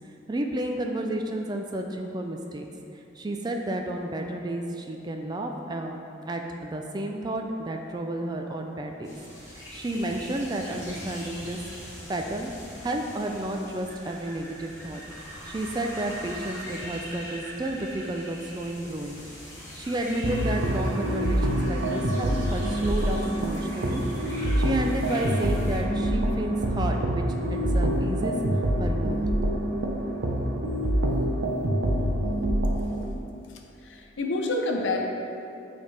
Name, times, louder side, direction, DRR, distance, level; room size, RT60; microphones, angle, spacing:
voice 1, 0.3-2.7 3.2-9.2 9.5-12.5 12.8-15.0 15.4-19.2 19.8-24.0 24.6-27.2 27.5-29.5, right 1 dB, 20° right, 3 dB, 0.3 m, -31 dB
sound 1, 9.0-25.8, equal, 15° left, 1.0 m, -42 dB
sound 2, 20.2-33.0, right 1 dB, 75° right, 0.6 m, -26 dB
voice 2, 33.8-35.0, left 2 dB, 80° left, 1 dB, 0.6 m, -28 dB
8.6 x 3.5 x 3.3 m, 2.7 s
head